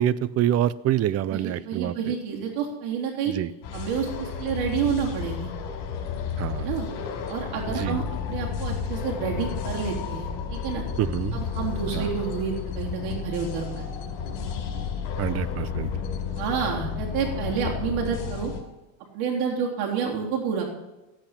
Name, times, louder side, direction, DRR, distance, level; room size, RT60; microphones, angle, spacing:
voice 1, 0.0-2.2 3.3-3.5 6.4-6.7 7.7-8.0 11.0-11.4 11.9-12.1 15.2-15.9, right 11 dB, 35° right, 18 dB, 0.4 m, -26 dB
voice 2, 1.3-3.3 3.7-5.5 6.6-6.9 7.3-10.8 11.3-14.1 16.4-18.5 19.1-20.6, right 7 dB, 75° right, -2 dB, 3.5 m, -29 dB
sound 1, 3.6-18.6, left 7 dB, 70° left, 4.3 m, -32 dB
15.5 x 8.8 x 5.8 m, 1.0 s
cardioid pair, 125°, 49 cm